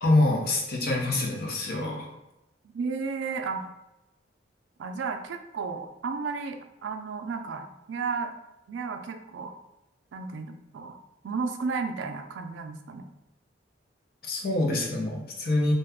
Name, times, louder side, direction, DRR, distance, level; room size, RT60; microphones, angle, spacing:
voice 1, 0.0-2.1 14.2-15.7, left 2 dB, 55° left, -1 dB, 0.7 m, -25 dB
voice 2, 2.7-3.7 4.8-8.3 8.7-9.5 10.1-10.9 11.2-13.1, right 4 dB, 80° right, 6 dB, 0.4 m, -33 dB
2.7 x 2.3 x 3.5 m, 0.94 s
head